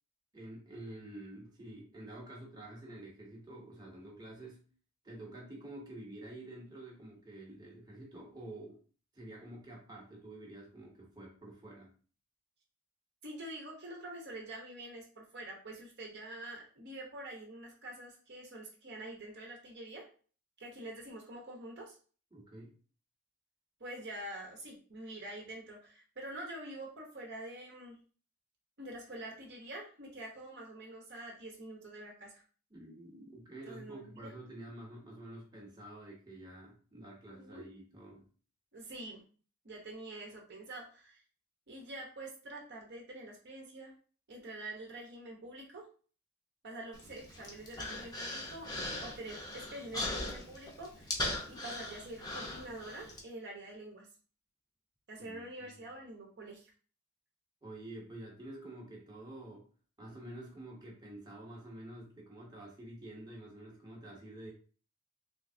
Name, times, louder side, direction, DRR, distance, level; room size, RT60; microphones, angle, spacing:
voice 1, 0.3-4.7 5.0-8.8 9.1-11.9 22.3-22.7 32.7-38.3 55.2-55.8 57.6-59.7 60.0-64.5, right 1 dB, 20° right, -3 dB, 0.9 m, -49 dB
voice 2, 13.2-20.1 20.6-22.0 23.8-28.0 28.8-32.4 33.6-34.3 37.3-37.6 38.7-39.2 39.6-41.2 41.7-43.9 44.3-45.9 46.6-48.7 49.0-51.2 51.5-54.1 55.1-56.7, right 1 dB, 50° right, 0 dB, 0.8 m, -46 dB
Human voice, 46.9-53.2, left 1 dB, 15° left, 0.6 m, -40 dB
3.2 x 3.1 x 2.6 m, 0.39 s
head